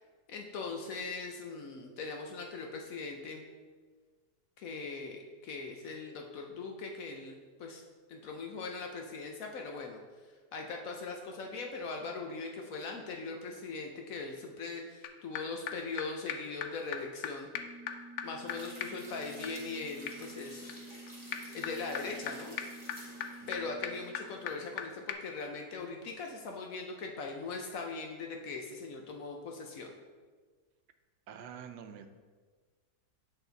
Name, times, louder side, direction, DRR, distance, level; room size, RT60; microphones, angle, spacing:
voice 1, 0.3-3.4 4.6-7.8 8.1-10.0 10.5-17.5 18.2-20.8 21.5-22.6 23.5-29.9, left 4 dB, 65° left, 2 dB, 0.9 m, -40 dB
sound 1, 15.0-15.1 15.4-15.5 15.7-15.8 16.0-16.1 16.3-16.4 16.6-16.7 16.9-17.0 17.2-17.3 17.5-24.8 25.1-25.2, left 7 dB, 85° left, 0.6 m, -41 dB
sound 2, 18.5-24.7 25.1-25.2, equal, 15° left, 0.8 m, -53 dB
voice 2, 31.3-32.1, right 8 dB, 80° right, 8 dB, 1.1 m, -46 dB
8.3 x 4.3 x 3.9 m, 1.5 s
omnidirectional pair, 1.8 m